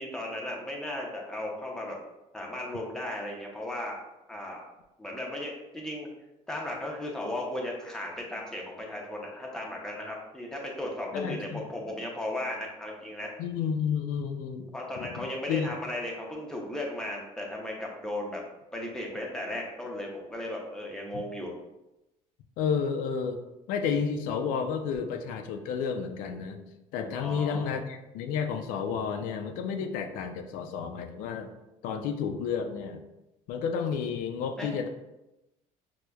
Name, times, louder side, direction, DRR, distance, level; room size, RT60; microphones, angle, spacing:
voice 1, 0.0-2.0 2.3-4.0 4.3-4.6 5.0-6.1 6.5-13.3 14.7-18.4 18.7-21.5 27.1-27.7 34.6-34.7, left 1 dB, 5° left, -1 dB, 0.5 m, -36 dB
voice 2, 11.1-11.6 13.4-14.7 15.0-15.7 22.6-23.4 23.7-26.6 26.9-31.5 31.8-33.0 33.5-34.9, left 6 dB, 85° left, 6 dB, 0.4 m, -31 dB
6.0 x 2.1 x 2.2 m, 0.95 s
cardioid pair, 165°, 14 cm